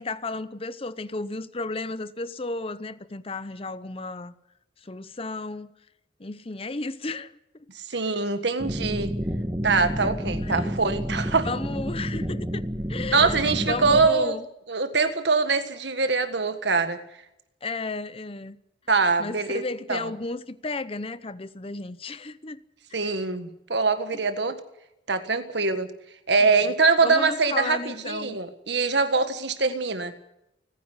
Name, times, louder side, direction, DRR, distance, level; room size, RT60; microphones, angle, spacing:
voice 1, 0.0-4.3 4.8-5.7 6.2-7.3 7.9-8.1 10.0-10.7 11.4-12.6 12.9-14.4 17.6-18.6 19.2-22.6 23.0-23.2 26.4-26.7 27.0-28.4, left 3 dB, 30° left, 0.7 m, -33 dB
voice 2, 7.9-9.1 9.6-11.5 13.1-14.4 14.7-17.0 18.9-19.6 19.9-20.0 22.9-24.6 25.1-25.9 26.3-30.1, right 4 dB, 65° right, 1.6 m, -23 dB
sound 1, 8.6-14.1, equal, 15° right, 1.4 m, -30 dB
29.0 x 10.0 x 9.7 m
head